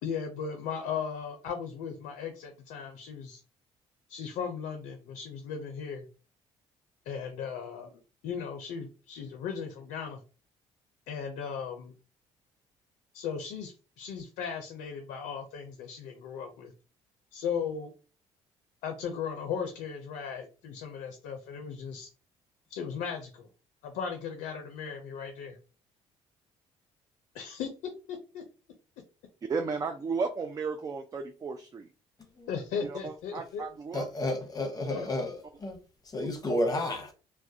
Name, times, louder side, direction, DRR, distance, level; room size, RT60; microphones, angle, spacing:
voice 1, 0.0-3.4 4.1-6.1 7.1-10.2 11.1-11.9 13.1-16.7 17.3-17.9 18.8-22.1 22.7-23.5 23.8-25.6 27.3-27.7 28.1-28.4 32.5-33.6 34.9-35.1, left 6 dB, 80° left, 0.5 m, -37 dB
voice 2, 29.5-31.9 32.8-34.1, right 4 dB, 30° right, 0.3 m, -34 dB
voice 3, 33.9-35.8 36.1-37.1, left 1 dB, 30° left, 0.8 m, -31 dB
2.2 x 2.1 x 2.6 m
supercardioid pair, 65°, 13 cm